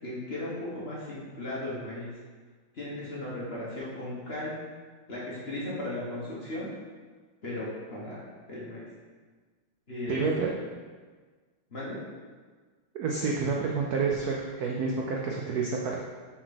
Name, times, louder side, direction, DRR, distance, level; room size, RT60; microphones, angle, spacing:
voice 1, 0.0-2.1 2.7-4.5 5.1-6.7 7.4-8.2 8.5-8.8 9.9-10.2 11.7-12.0, left 1 dB, 35° left, -7 dB, 1.3 m, -36 dB
voice 2, 10.1-10.5 12.9-16.0, right 4 dB, 75° right, -1 dB, 0.8 m, -29 dB
5.9 x 4.6 x 4.2 m, 1.5 s
omnidirectional pair, 2.3 m